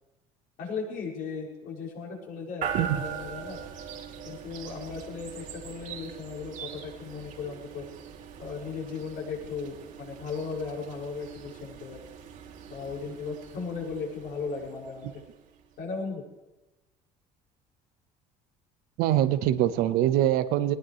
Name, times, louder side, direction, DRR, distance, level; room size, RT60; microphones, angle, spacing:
voice 1, 0.6-3.6 4.2-7.8 8.4-12.0 12.7-15.2 15.8-16.3, left 5 dB, 70° left, -2 dB, 6.3 m, -36 dB
sound 1, 2.6-15.6, right 7 dB, 55° right, 2.9 m, -41 dB
voice 2, 19.0-20.7, right 12 dB, 80° right, 11 dB, 1.2 m, -23 dB
19.5 x 19.5 x 3.2 m, 1.0 s
cardioid pair, 130°, 16 cm